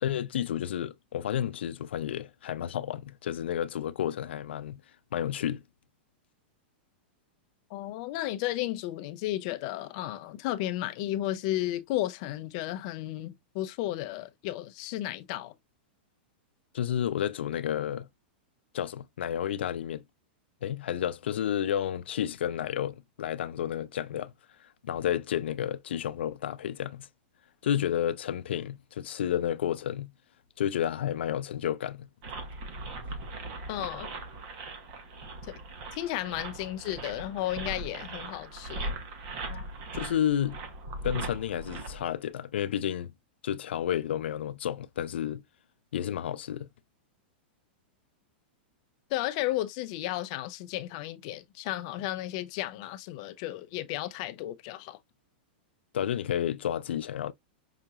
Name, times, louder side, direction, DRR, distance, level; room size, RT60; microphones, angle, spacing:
voice 1, 0.0-4.8 5.1-5.6 16.7-18.1 18.7-20.0 20.6-24.3 24.6-27.1 27.6-30.1 30.6-32.1 39.9-40.6 41.0-43.1 43.4-45.4 45.9-46.7 55.9-57.3, left 10 dB, 85° left, 0.5 m, -31 dB
voice 2, 7.7-15.5 33.7-34.1 35.5-35.6 35.9-38.9 39.5-39.7 49.1-55.0, left 14 dB, 35° left, 0.6 m, -33 dB
sound 1, 32.2-42.1, right 2 dB, 40° right, 1.0 m, -39 dB
5.8 x 2.8 x 2.4 m
supercardioid pair, 170°, 6 cm